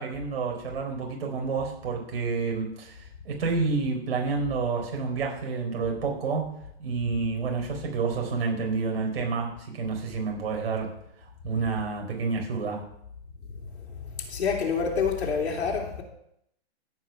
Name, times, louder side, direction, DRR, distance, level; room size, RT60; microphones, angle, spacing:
voice 1, 0.0-12.9, right 4 dB, 60° right, 1 dB, 4.2 m, -29 dB
voice 2, 14.3-16.0, left 5 dB, 75° left, 1 dB, 3.1 m, -27 dB
15.5 x 5.9 x 5.8 m, 0.75 s
hypercardioid pair, 170°, 33 cm